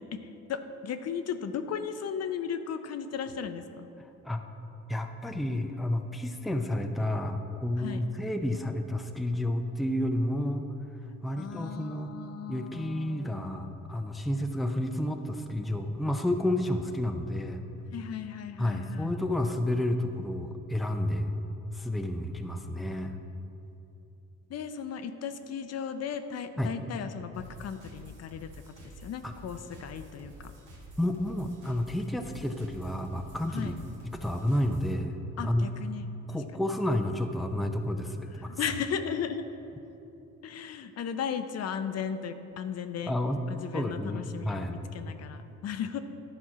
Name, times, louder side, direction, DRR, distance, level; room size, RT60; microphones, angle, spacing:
voice 1, 0.0-3.9 7.8-8.0 11.4-13.7 17.9-19.2 24.5-28.5 28.8-30.3 33.5-33.7 35.4-36.1 36.5-36.6 38.4-39.4 40.4-43.1 43.5-46.0, left 7 dB, 55° left, 9 dB, 0.6 m, -36 dB
voice 2, 4.0-4.4 4.9-10.6 11.2-12.1 12.5-17.6 18.6-21.3 21.7-23.2 26.6-26.7 29.2-29.3 31.0-33.8 34.0-35.2 35.4-35.7 36.3-38.6 43.1-43.4 43.7-44.8, left 1 dB, ahead, 5 dB, 0.5 m, -30 dB
sound 1, 27.3-34.9, right 1 dB, 80° right, 1.8 m, -49 dB
11.0 x 4.3 x 6.0 m, 2.9 s
cardioid pair, 90°, 30 cm